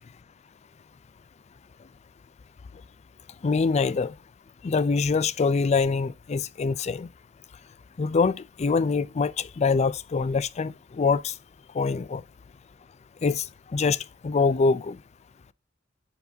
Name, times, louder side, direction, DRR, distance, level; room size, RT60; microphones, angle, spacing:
voice 1, 3.4-4.1 4.6-7.1 8.0-11.3 11.7-12.2 13.2-13.5 13.7-15.0, left 4 dB, 35° left, 0.4 m, -24 dB
9.1 x 4.7 x 2.7 m
head